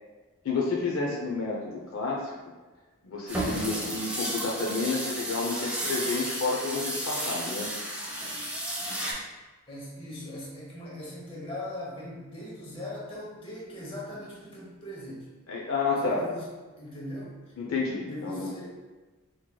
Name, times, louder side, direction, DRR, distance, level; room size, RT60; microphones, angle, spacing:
voice 1, 0.4-2.4 3.0-7.7 15.5-16.3 17.6-18.5, left 3 dB, 65° left, -2 dB, 0.6 m, -30 dB
sound 1, 3.3-9.1, right 1 dB, 5° right, 0.8 m, -33 dB
voice 2, 9.7-15.3 16.0-17.3 18.0-18.8, left 1 dB, 25° left, -5 dB, 0.9 m, -40 dB
4.4 x 3.0 x 2.2 m, 1.3 s
head